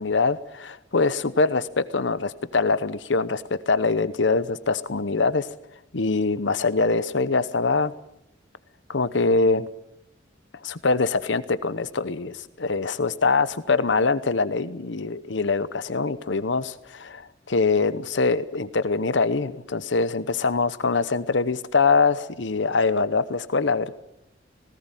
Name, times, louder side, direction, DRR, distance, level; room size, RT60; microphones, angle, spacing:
voice 1, 0.0-5.5 5.9-7.9 8.9-9.7 10.6-24.0, left 4 dB, 70° left, 15 dB, 0.9 m, -23 dB
19.0 x 17.5 x 9.1 m, 0.81 s
head